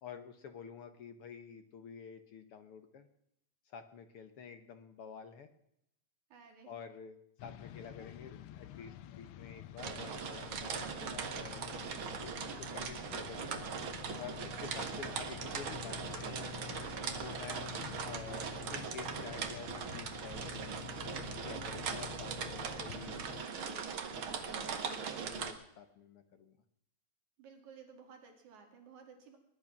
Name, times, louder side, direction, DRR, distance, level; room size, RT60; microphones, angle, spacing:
voice 1, 0.0-3.1 3.7-5.5 6.7-11.8 12.4-13.6 14.2-16.4 17.2-17.7 18.0-20.8 21.4-26.5, left 6 dB, 60° left, 9 dB, 1.7 m, -50 dB
voice 2, 6.3-6.7 12.4-12.8 22.6-23.1 27.4-29.4, right 6 dB, 80° right, 4 dB, 3.8 m, -56 dB
sound 1, 7.4-23.5, left 12 dB, 90° left, 1.2 m, -49 dB
sound 2, 9.8-25.5, right 6 dB, 50° right, 2.0 m, -40 dB
21.0 x 11.0 x 6.0 m, 0.77 s
omnidirectional pair, 3.3 m